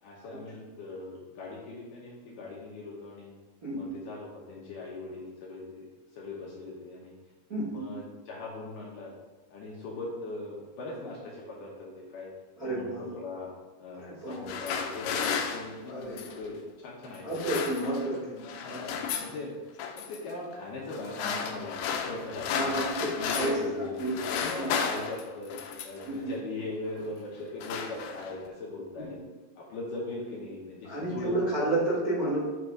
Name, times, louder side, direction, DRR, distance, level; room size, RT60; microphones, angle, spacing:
voice 1, 0.0-3.3 3.7-5.8 6.2-7.1 7.7-9.1 9.5-12.3 12.7-13.5 13.8-17.5 18.1-18.2 18.6-19.5 20.0-22.8 23.2-25.5 25.8-29.2 29.6-31.4, left 2 dB, 70° left, -4 dB, 2.1 m, -40 dB
voice 2, 3.6-3.9 7.5-7.9 12.6-13.1 13.9-14.4 15.8-16.3 17.2-18.4 18.7-18.8 22.5-24.1 24.5-24.8 26.0-26.3 29.0-29.1 30.8-32.4, right 1 dB, 70° right, -9 dB, 0.8 m, -31 dB
sound 1, 14.3-16.5 17.2-18.2 18.4-19.4 19.8-20.2 20.9-23.7 24.0-26.1 26.9-27.1 27.4-28.5, left 6 dB, 85° left, 2.2 m, -34 dB
8.8 x 3.3 x 4.7 m, 1.2 s
omnidirectional pair, 4.9 m